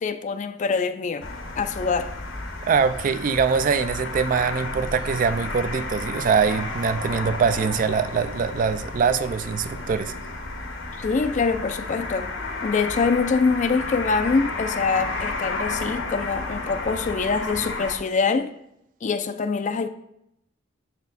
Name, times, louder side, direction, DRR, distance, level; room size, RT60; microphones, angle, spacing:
voice 1, 0.0-1.3 1.6-2.1 11.0-12.3 12.6-18.5 19.0-19.9, left 4 dB, 40° left, 0.4 m, -24 dB
sound 1, 1.2-17.9, left 3 dB, 70° left, 1.0 m, -32 dB
voice 2, 2.7-10.1, right 6 dB, 45° right, 0.3 m, -23 dB
6.8 x 4.3 x 4.0 m
head